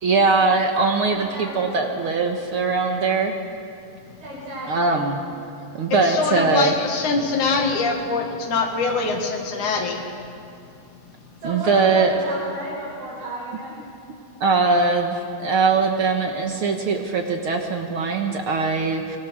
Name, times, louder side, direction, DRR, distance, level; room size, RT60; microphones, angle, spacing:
voice 1, 0.0-3.3 4.7-5.2 5.7-6.7 11.4-12.1 14.4-19.2, right 4 dB, 55° right, 3 dB, 1.8 m, -21 dB
voice 2, 1.0-1.9 4.2-5.0 11.4-13.8, equal, 75° right, -8 dB, 6.8 m, -33 dB
voice 3, 5.9-10.0, left 4 dB, 85° left, 3 dB, 3.4 m, -23 dB
24.0 x 23.0 x 6.5 m, 2.5 s
omnidirectional pair, 3.4 m